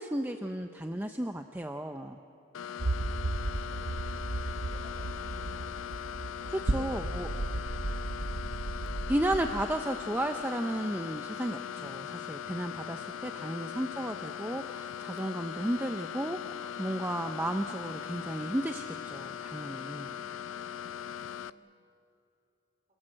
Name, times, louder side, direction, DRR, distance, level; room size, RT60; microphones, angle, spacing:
voice 1, 0.0-2.2 6.5-7.3 9.1-20.1, right 1 dB, 10° right, 6 dB, 0.6 m, -34 dB
sound 1, 2.5-21.5, left 8 dB, 90° left, 0.5 m, -40 dB
sound 2, 2.8-9.6, right 2 dB, 85° right, 0.9 m, -34 dB
voice 2, 3.4-4.3 4.6-5.8 6.3-7.3 7.8-8.4 13.4-13.6 20.0-21.8, right 1 dB, 35° right, 2 dB, 4.2 m, -57 dB
28.0 x 19.5 x 7.6 m, 2.8 s
head